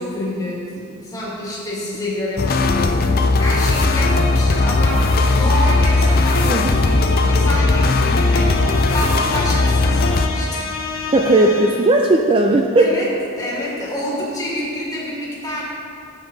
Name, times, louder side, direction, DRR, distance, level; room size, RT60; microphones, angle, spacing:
voice 1, 0.0-8.5 8.9-10.7 12.8-13.1 13.4-15.6, left 1 dB, 15° left, -5 dB, 1.8 m, -28 dB
sound 1, 2.4-10.3, left 2 dB, 40° left, 0.4 m, -17 dB
sound 2, 3.5-12.1, left 3 dB, 60° left, 0.9 m, -30 dB
voice 2, 6.4-6.8 11.1-12.9, right 2 dB, 25° right, 2 dB, 0.4 m, -16 dB
11.5 x 7.2 x 4.0 m, 2.5 s
head